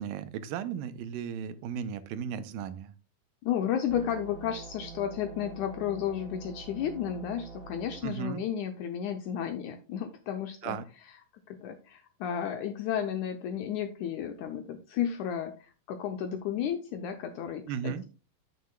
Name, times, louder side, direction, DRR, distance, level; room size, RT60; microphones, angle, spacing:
voice 1, 0.0-2.9 8.0-8.4 10.6-10.9 17.7-18.0, right 8 dB, 85° right, 12 dB, 2.3 m, -35 dB
voice 2, 3.4-10.8 11.5-18.1, left 9 dB, 80° left, 7 dB, 1.8 m, -33 dB
sound 1, 3.9-8.0, right 5 dB, 50° right, 3.7 m, -45 dB
9.3 x 7.5 x 2.2 m, 0.34 s
omnidirectional pair, 4.1 m